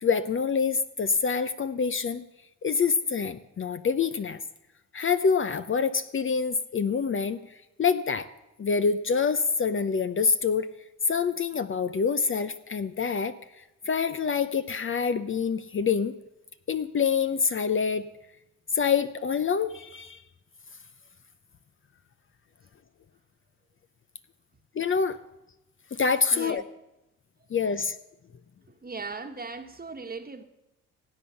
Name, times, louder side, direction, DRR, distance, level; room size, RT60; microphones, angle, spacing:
voice 1, 0.0-2.2 2.6-4.4 4.9-7.4 7.8-8.3 8.6-10.7 11.1-13.3 13.9-16.1 16.7-18.1 18.7-20.2 24.8-25.2 25.9-26.6 27.5-28.0, left 5 dB, 35° left, 0.8 m, -26 dB
voice 2, 26.3-26.6 28.8-30.4, right 4 dB, 25° right, 1.5 m, -38 dB
17.0 x 8.6 x 7.0 m
supercardioid pair, 65°, 35 cm